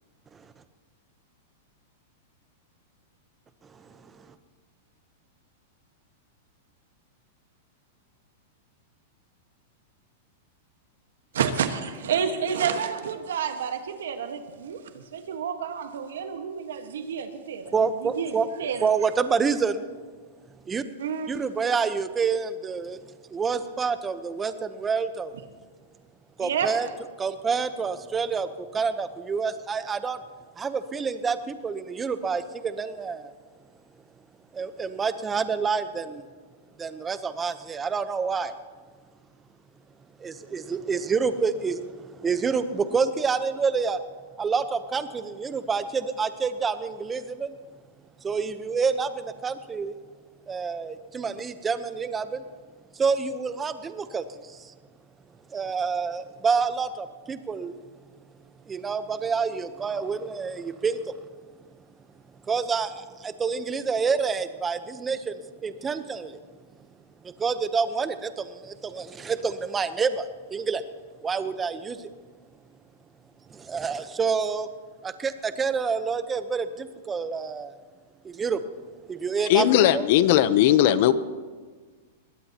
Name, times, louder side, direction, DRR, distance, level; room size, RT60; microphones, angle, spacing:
voice 1, 3.7-4.3 17.7-18.5 18.8-19.8 20.7-20.8 21.3-23.0 23.3-25.3 26.4-26.9 27.2-30.2 30.6-33.3 34.5-36.2 36.8-38.5 40.2-44.0 44.4-47.5 48.2-49.9 50.5-52.4 52.9-54.7 55.5-57.8 58.7-61.1 62.5-66.4 67.2-70.8 71.2-72.1 73.5-74.7 75.0-77.7 78.2-78.6 79.1-80.1, right 5 dB, 15° right, 11 dB, 0.9 m, -28 dB
voice 2, 11.3-17.7 18.0-18.9 21.0-21.3 26.4-26.7, right 7 dB, 85° right, 7 dB, 1.5 m, -29 dB
voice 3, 79.5-81.1, left 12 dB, 55° left, 14 dB, 0.8 m, -18 dB
21.0 x 18.0 x 3.0 m, 1.4 s
hypercardioid pair, 135°, 0 cm